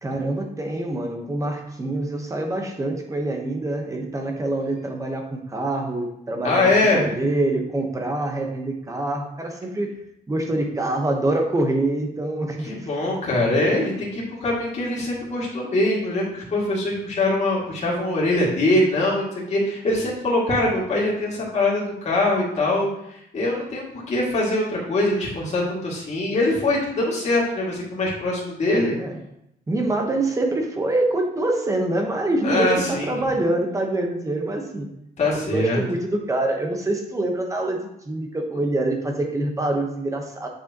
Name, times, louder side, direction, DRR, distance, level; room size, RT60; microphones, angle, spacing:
voice 1, 0.0-9.9 10.3-12.9 29.0-29.2 29.7-34.9 35.3-37.8 38.0-40.5, right 2 dB, 20° right, 2 dB, 1.1 m, -25 dB
voice 2, 6.4-7.1 12.7-22.9 23.3-28.9 32.4-33.2 35.2-35.8, left 2 dB, 45° left, -5 dB, 2.2 m, -23 dB
8.1 x 6.2 x 2.9 m, 0.79 s
wide cardioid pair, 165°, 17 cm